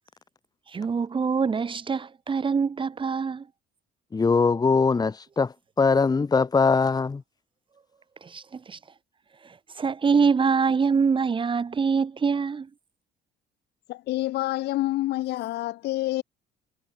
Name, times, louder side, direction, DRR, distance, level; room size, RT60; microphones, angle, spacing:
voice 1, 0.7-3.5 8.2-8.8 9.4-12.7, right 5 dB, 30° right, 2.2 m, -25 dB
voice 2, 4.1-7.2, left 4 dB, 25° left, 2.0 m, -22 dB
voice 3, 13.9-16.2, left 16 dB, 80° left, 6.9 m, -27 dB
cardioid pair, 110°, 17 cm